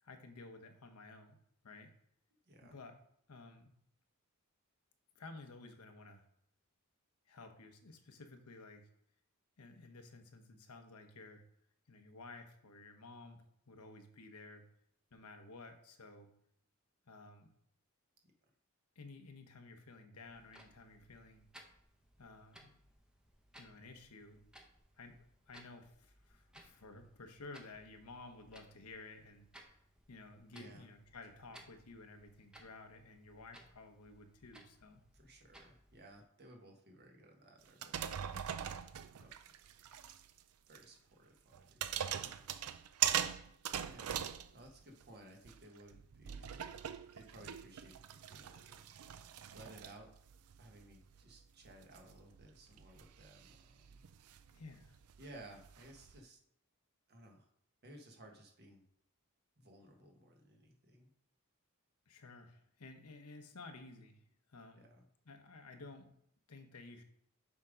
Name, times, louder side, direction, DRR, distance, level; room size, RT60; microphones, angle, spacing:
voice 1, 0.0-1.4 1.6-1.9 2.6-3.0 3.3-3.8 5.1-6.2 7.3-8.9 9.6-11.4 11.9-14.6 15.1-16.3 17.1-17.5 18.9-21.4 22.2-22.8 23.6-24.4 25.0-29.8 30.1-35.1 54.5-55.0 62.1-64.2 64.5-64.9 65.2-66.1 66.5-67.0, left 3 dB, 90° left, 6 dB, 0.9 m, -54 dB
voice 2, 2.5-2.8 30.5-30.9 35.1-38.0 39.1-39.3 40.7-42.4 43.8-44.3 44.5-46.7 47.1-48.8 49.5-50.1 50.6-54.0 55.2-56.4 57.1-57.5 57.8-58.8 59.6-61.1 64.7-65.0, right 1 dB, 50° right, 2 dB, 1.3 m, -58 dB
Clock, 20.2-36.2, equal, 5° right, 0.8 m, -63 dB
sound 1, 37.7-40.4 40.7-40.8 41.5-45.1 45.4-56.2, right 9 dB, 75° right, 0.4 m, -42 dB
7.2 x 3.7 x 5.1 m, 0.71 s
head